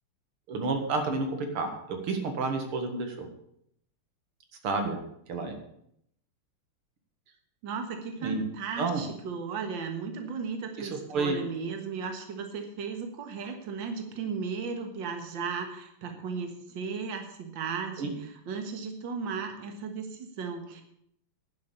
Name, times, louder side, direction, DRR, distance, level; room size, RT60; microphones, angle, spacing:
voice 1, 0.5-3.3 4.6-5.0 5.3-5.6 8.2-8.4 8.8-9.0 10.8-11.4 18.0-18.1, right 3 dB, 85° right, 5 dB, 2.6 m, -30 dB
voice 2, 7.6-20.8, right 5 dB, 60° right, 5 dB, 2.2 m, -35 dB
11.0 x 7.8 x 8.5 m, 0.72 s
omnidirectional pair, 2.4 m